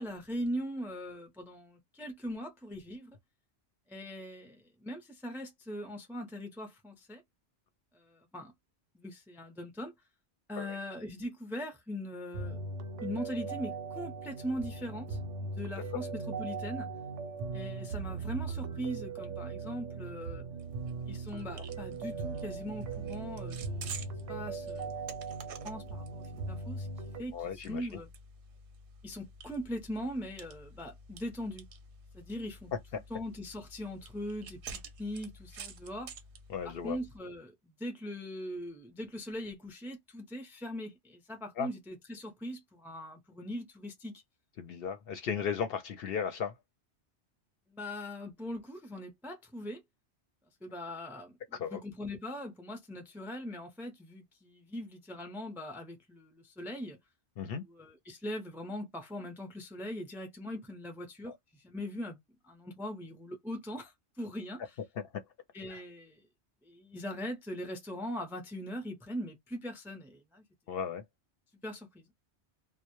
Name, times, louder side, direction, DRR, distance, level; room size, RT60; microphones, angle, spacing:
voice 1, 0.0-3.1 3.9-7.2 7.9-8.5 8.9-9.9 10.5-12.6 13.0-16.9 17.5-20.4 21.1-23.9 24.3-26.9 27.2-28.1 29.0-31.6 32.1-36.1 36.8-44.2 47.7-49.8 50.6-51.3 51.7-57.0 57.6-62.2 62.4-64.6 65.5-66.2 66.6-70.4 71.6-72.1, equal, 5° right, 0.3 m, -41 dB
sound 1, 12.3-27.2, right 4 dB, 85° right, 0.9 m, -39 dB
sound 2, 20.6-37.2, right 3 dB, 60° right, 0.7 m, -50 dB
voice 2, 27.3-27.9 36.5-37.0 41.6-41.7 44.6-46.5 51.5-51.8 57.4-57.6 61.2-61.4 65.0-65.1 65.7-65.8 70.7-71.0, left 7 dB, 65° left, 0.7 m, -36 dB
2.1 x 2.0 x 2.9 m
omnidirectional pair, 1.2 m